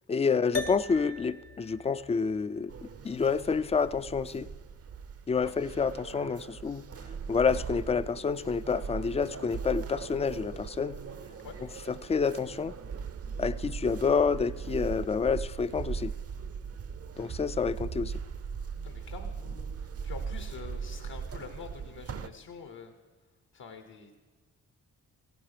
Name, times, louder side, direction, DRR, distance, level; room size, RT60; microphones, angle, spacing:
voice 1, 0.1-2.7 3.0-4.5 5.3-6.8 7.3-11.0 12.0-12.8 13.4-16.1 17.2-18.1, left 5 dB, 15° left, 16 dB, 0.3 m, -28 dB
sound 1, 0.5-5.1, left 4 dB, 40° left, 0.7 m, -41 dB
sound 2, 2.7-22.3, right 6 dB, 35° right, 0.6 m, -39 dB
voice 2, 18.8-22.9 23.5-24.2, left 5 dB, 65° left, 6 dB, 1.1 m, -46 dB
16.5 x 10.5 x 3.4 m, 1.3 s
supercardioid pair, 40°, 40 cm